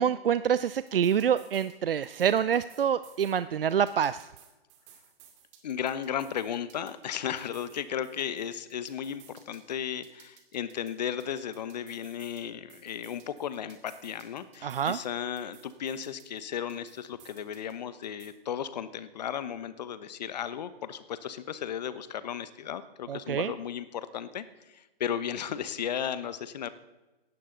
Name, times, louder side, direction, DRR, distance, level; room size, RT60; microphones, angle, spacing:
voice 1, 0.0-4.3 14.6-15.0 23.1-23.5, right 8 dB, 70° right, 15 dB, 0.5 m, -26 dB
sound 1, 0.7-1.8 2.0-3.4 3.7-7.1 7.4-9.7 10.0-12.4 12.7-15.1 15.4-17.7 18.0-18.3, right 10 dB, 30° right, 2.3 m, -57 dB
voice 2, 5.6-26.7, left 9 dB, 45° left, 14 dB, 1.1 m, -35 dB
18.0 x 14.0 x 3.9 m, 1.1 s
figure-of-eight pair, 140°, 30 cm